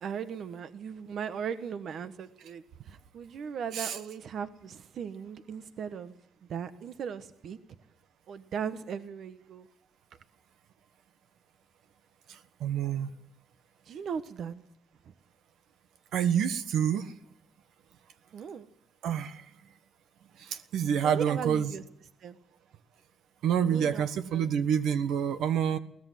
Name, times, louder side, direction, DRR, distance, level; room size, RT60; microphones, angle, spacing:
voice 1, 0.0-6.1 6.5-7.6 8.3-9.7 13.8-14.6 15.0-15.1 18.3-18.7 21.0-21.8 22.2-22.4 23.6-24.1 24.3-24.5, right 7 dB, 65° right, 10 dB, 1.2 m, -38 dB
voice 2, 12.3-13.1 16.1-17.1 19.0-19.4 20.4-21.7 23.4-25.8, right 8 dB, 80° right, 10 dB, 1.3 m, -28 dB
22.5 x 17.5 x 7.6 m, 0.75 s
cardioid pair, 90°, 0 cm